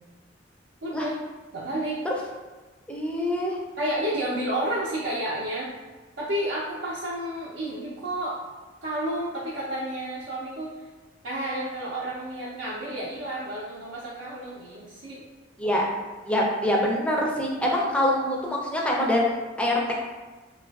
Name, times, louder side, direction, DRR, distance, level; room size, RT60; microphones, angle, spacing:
voice 1, 0.8-1.1 1.5-2.0 3.8-5.7 6.2-8.4 8.8-10.9 11.2-15.2, right 1 dB, 80° right, -8 dB, 0.5 m, -31 dB
voice 2, 2.9-3.6 15.6-15.9 16.3-19.3 19.6-19.8, left 1 dB, 5° left, -2 dB, 0.4 m, -24 dB
3.2 x 2.3 x 2.2 m, 1.3 s
head